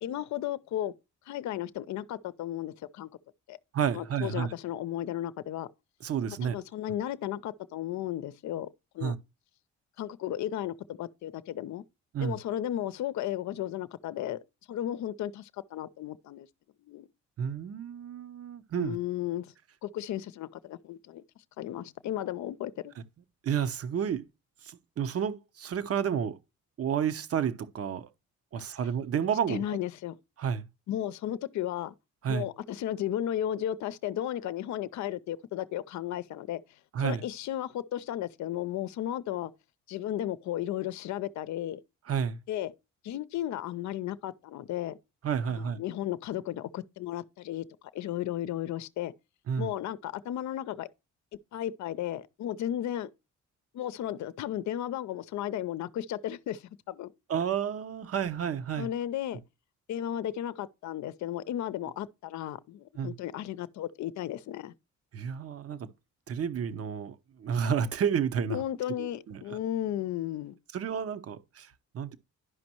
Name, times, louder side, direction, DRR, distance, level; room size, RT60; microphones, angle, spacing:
voice 1, 0.0-0.9 1.3-3.1 3.5-3.6 3.9-5.7 6.4-8.7 8.9-9.2 10.0-11.8 12.2-14.4 14.7-16.5 16.9-17.1 18.8-19.5 19.8-21.2 21.6-22.9 29.5-30.2 30.9-31.9 32.3-39.5 39.9-41.8 42.5-42.7 43.0-45.0 45.6-47.7 47.9-49.1 49.6-50.9 51.5-53.1 53.7-57.1 58.8-59.4 59.9-64.7 68.5-70.6, left 12 dB, 70° left, 0.6 m, -34 dB
voice 2, 3.7-4.5 6.0-6.5 9.0-9.2 12.1-12.4 17.4-19.0 23.4-24.2 24.6-26.4 26.8-28.1 28.5-29.8 30.4-30.7 32.2-32.4 36.9-37.2 42.1-42.4 45.2-45.8 49.5-49.7 57.3-58.9 63.0-63.1 65.1-65.9 66.3-68.6 69.0-69.6 70.7-72.2, right 7 dB, 50° right, 0.9 m, -31 dB
11.5 x 5.2 x 3.0 m
cardioid pair, 90°, 30 cm